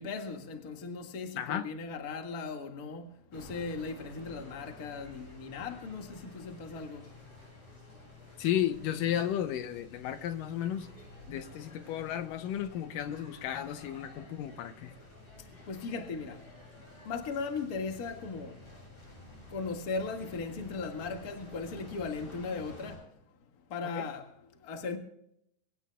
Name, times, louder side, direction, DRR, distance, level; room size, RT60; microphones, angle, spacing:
voice 1, 0.0-7.1 15.7-16.4 17.0-18.5 19.5-23.0 23.7-24.3 24.6-25.0, left 4 dB, 35° left, 1.6 m, -37 dB
voice 2, 1.4-1.7 8.4-10.9 11.3-14.9 23.8-24.1, left 10 dB, 80° left, 2.5 m, -33 dB
sound 1, 3.3-23.0, left 2 dB, 55° left, 9.0 m, -51 dB
24.0 x 16.5 x 2.3 m
omnidirectional pair, 3.9 m